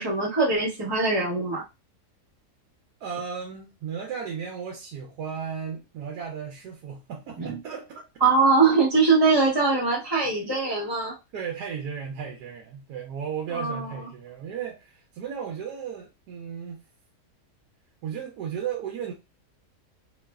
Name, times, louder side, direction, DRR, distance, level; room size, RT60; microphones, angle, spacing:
voice 1, 0.0-1.6 7.4-7.6 8.2-11.1 13.5-14.0, right 4 dB, 25° right, 0.5 m, -22 dB
voice 2, 3.0-8.0 11.3-16.8 18.0-19.1, right 7 dB, 80° right, 1.2 m, -35 dB
3.1 x 2.0 x 2.2 m
omnidirectional pair, 1.7 m